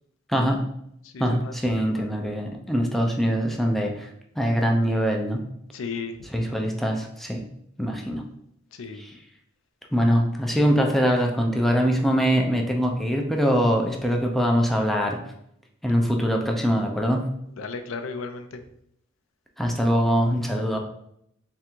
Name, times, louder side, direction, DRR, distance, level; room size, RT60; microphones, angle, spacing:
voice 1, 0.3-0.6 1.2-4.1 4.4-5.5 6.3-7.5 7.8-8.2 9.9-15.2 15.8-17.3 19.6-20.8, equal, ahead, 1 dB, 0.4 m, -23 dB
voice 2, 1.0-2.1 5.7-6.2 8.7-9.0 15.9-16.0 17.6-18.6 20.5-20.8, left 4 dB, 70° left, 7 dB, 0.5 m, -35 dB
3.5 x 2.5 x 4.4 m, 0.73 s
head